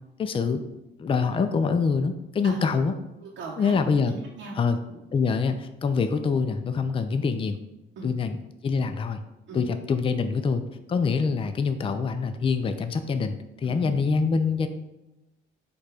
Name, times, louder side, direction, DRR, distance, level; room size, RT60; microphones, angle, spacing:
voice 1, 0.2-0.6 1.0-2.9 3.6-4.1 4.5-4.8 5.1-7.6 8.0-9.2 9.5-10.6 10.9-14.7, left 5 dB, 30° left, 9 dB, 0.4 m, -25 dB
voice 2, 3.2-4.6 4.9-5.0 8.0-8.1 9.5-9.6 13.6-13.9, right 3 dB, 80° right, -3 dB, 0.8 m, -39 dB
4.7 x 2.3 x 4.8 m, 0.96 s
cardioid pair, 90°, 20 cm